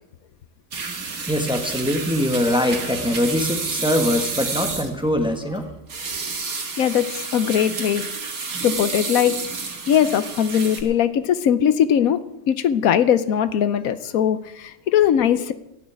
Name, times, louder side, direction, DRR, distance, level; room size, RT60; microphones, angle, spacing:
sound 1, 0.7-10.8, right 4 dB, 85° right, 2.1 m, -30 dB
voice 1, 1.3-5.7, left 1 dB, 5° right, 5 dB, 1.2 m, -22 dB
voice 2, 6.8-8.1 8.6-9.4 9.9-12.2 12.5-15.5, left 9 dB, 80° left, 13 dB, 1.2 m, -20 dB
15.0 x 6.4 x 9.3 m, 0.90 s
omnidirectional pair, 1.5 m